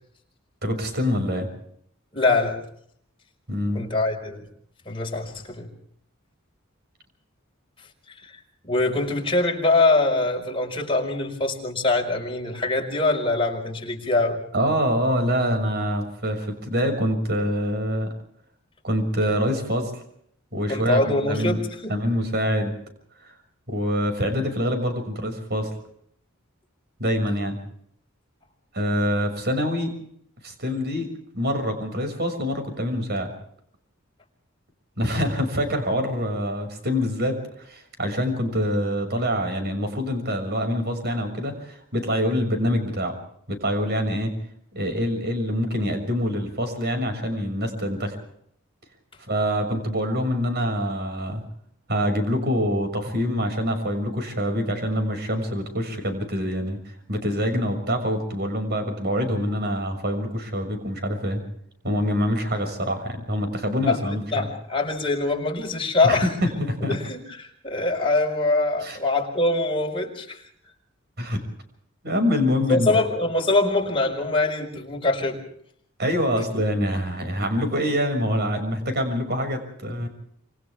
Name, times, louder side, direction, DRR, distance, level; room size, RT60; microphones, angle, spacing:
voice 1, 0.6-1.5 3.5-3.9 14.5-18.1 18.8-19.9 20.5-21.6 21.9-22.7 23.2-23.3 23.7-25.7 27.0-27.6 28.7-29.9 30.4-31.1 31.3-33.3 35.0-43.1 43.5-44.3 44.7-48.2 49.3-51.4 51.9-56.8 57.1-61.4 61.8-64.5 66.0-67.0 68.8-69.0 71.2-71.4 72.0-72.9 76.0-80.1, equal, 50° right, 6 dB, 6.5 m, -25 dB
voice 2, 2.1-2.6 3.7-4.5 4.9-5.7 8.2-8.3 8.6-14.4 20.7-21.9 63.9-66.3 66.9-70.5 72.7-75.4 76.4-76.5, left 2 dB, 25° left, 2 dB, 5.5 m, -23 dB
28.0 x 27.5 x 3.6 m, 0.67 s
head